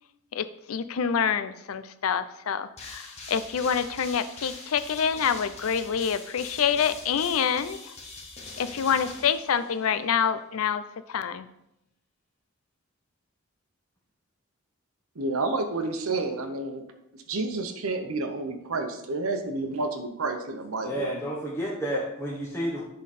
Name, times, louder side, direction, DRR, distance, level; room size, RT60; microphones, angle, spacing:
voice 1, 0.3-7.9 8.6-10.8 11.1-11.5, left 7 dB, 80° left, 13 dB, 0.5 m, -27 dB
sound 1, 2.8-10.0, left 3 dB, 30° left, 1.3 m, -43 dB
voice 2, 15.2-16.8 17.1-21.1, right 3 dB, 80° right, 5 dB, 0.9 m, -30 dB
voice 3, 20.8-22.8, equal, 10° left, -5 dB, 1.1 m, -30 dB
10.5 x 3.9 x 4.2 m, 0.83 s
head